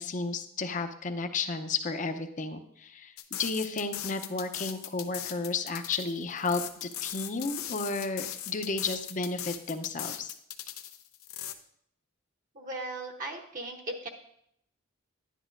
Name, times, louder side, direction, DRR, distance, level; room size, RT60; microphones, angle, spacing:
voice 1, 0.0-3.1 3.4-10.3, left 3 dB, 35° left, 8 dB, 0.6 m, -33 dB
sound 1, 3.2-11.5, left 11 dB, 90° left, 0.7 m, -39 dB
voice 2, 12.5-14.1, right 2 dB, 40° right, 0 dB, 0.8 m, -37 dB
11.0 x 10.0 x 2.5 m, 0.72 s
head